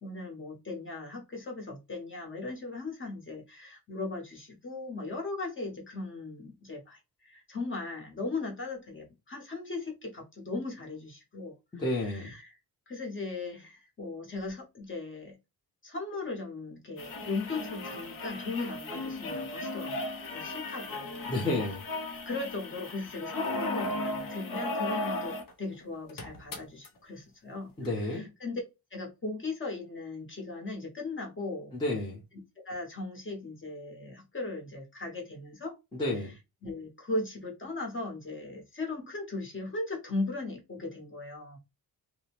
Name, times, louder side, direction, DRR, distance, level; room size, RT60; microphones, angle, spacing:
voice 1, 0.0-12.5 12.9-15.4 15.8-20.0 20.3-21.3 22.3-28.6 28.9-31.7 32.6-35.8 36.1-36.2 36.6-41.6, left 3 dB, 30° left, 0.9 m, -38 dB
voice 2, 11.8-12.3 21.3-21.8 27.8-28.3 31.7-32.2 36.0-36.3, left 2 dB, 10° left, 0.7 m, -30 dB
sound 1, 17.0-25.5 25.8-25.9 26.1-26.9 27.9-28.0, left 2 dB, 60° left, 0.7 m, -36 dB
2.6 x 2.0 x 2.9 m
wide cardioid pair, 175°, 39 cm